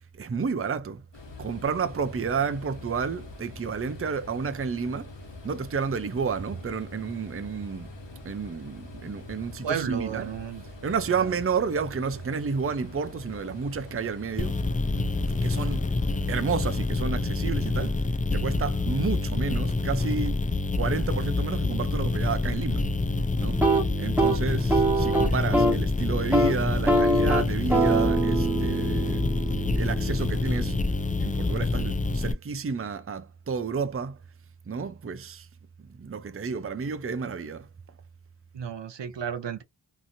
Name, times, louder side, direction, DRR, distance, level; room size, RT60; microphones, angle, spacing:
voice 1, 0.1-1.0 1.4-5.1 5.4-7.9 8.2-10.3 10.6-14.6 15.4-15.9 16.3-18.0 18.3-20.4 20.7-22.9 23.4-23.6 24.0-29.3 29.7-30.8 31.2-34.2 34.7-35.5 35.9-37.7, right 5 dB, 30° right, 0.5 m, -31 dB
sound 1, 1.1-16.9, left 2 dB, 80° left, 1.2 m, -44 dB
voice 2, 9.6-10.6 11.2-11.3 38.5-39.6, right 8 dB, 75° right, 0.6 m, -32 dB
sound 2, 14.4-32.3, left 3 dB, 20° left, 0.4 m, -27 dB
sound 3, 23.5-25.9 26.2-26.5 26.9-30.7, right 2 dB, 5° right, 1.4 m, -25 dB
2.9 x 2.5 x 2.6 m
wide cardioid pair, 45°, 44 cm